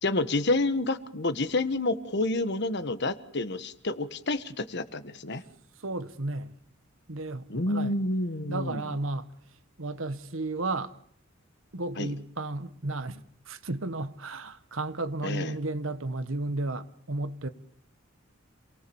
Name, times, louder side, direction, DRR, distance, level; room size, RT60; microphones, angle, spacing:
voice 1, 0.0-5.4 7.5-8.9 12.0-12.1 15.2-15.6, left 2 dB, 55° left, 1.4 m, -29 dB
voice 2, 5.8-6.5 7.1-7.9 8.5-9.3 9.8-10.9 11.7-17.5, right 2 dB, 75° right, 1.4 m, -33 dB
28.0 x 19.5 x 7.1 m
head